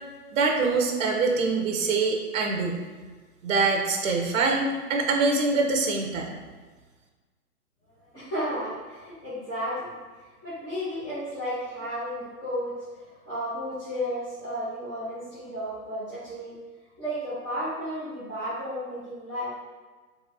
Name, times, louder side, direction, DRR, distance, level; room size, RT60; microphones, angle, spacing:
voice 1, 0.3-2.8 3.4-6.3, right 3 dB, 60° right, 1 dB, 0.7 m, -24 dB
voice 2, 8.1-9.9 10.4-16.5 17.0-19.5, equal, 15° left, -17 dB, 0.7 m, -33 dB
4.0 x 2.7 x 2.6 m, 1.4 s
hypercardioid pair, 160°, 46 cm